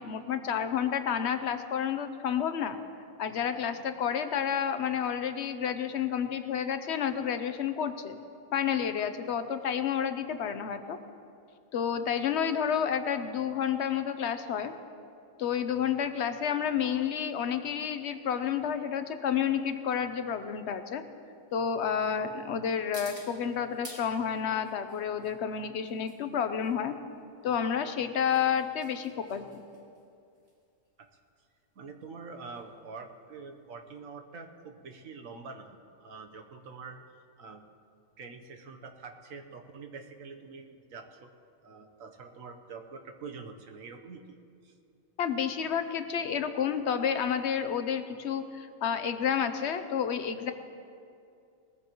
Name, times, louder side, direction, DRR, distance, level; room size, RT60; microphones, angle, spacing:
voice 1, 0.0-2.8 3.2-8.2 8.5-11.0 11.7-14.7 15.4-21.0 21.5-27.0 27.4-29.5 45.2-50.5, left 8 dB, 60° left, 9 dB, 1.0 m, -30 dB
sound 1, 17.3-34.0, right 1 dB, 50° right, 2.7 m, -54 dB
voice 2, 31.7-37.6 38.2-41.3 41.6-44.4 44.6-44.7, right 4 dB, 85° right, 4 dB, 1.4 m, -46 dB
20.0 x 14.5 x 3.0 m, 2.5 s
omnidirectional pair, 1.4 m